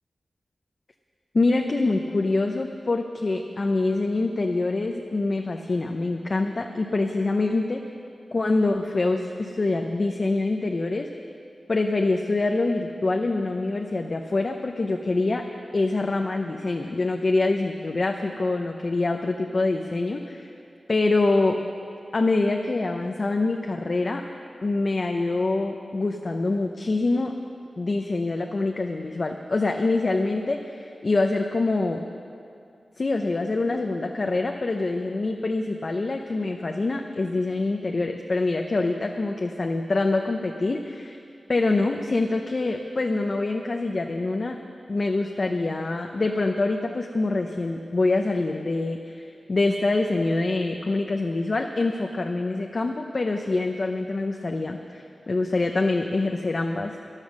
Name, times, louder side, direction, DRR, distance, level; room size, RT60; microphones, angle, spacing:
voice 1, 1.3-7.8 8.3-11.1 11.7-15.4 15.7-20.5 20.9-21.6 22.1-24.2 24.6-27.3 27.8-32.0 33.0-41.2 41.5-44.6 44.9-57.0, left 2 dB, 45° left, 3 dB, 0.6 m, -25 dB
14.0 x 11.5 x 6.4 m, 2.5 s
wide cardioid pair, 120°, 0 cm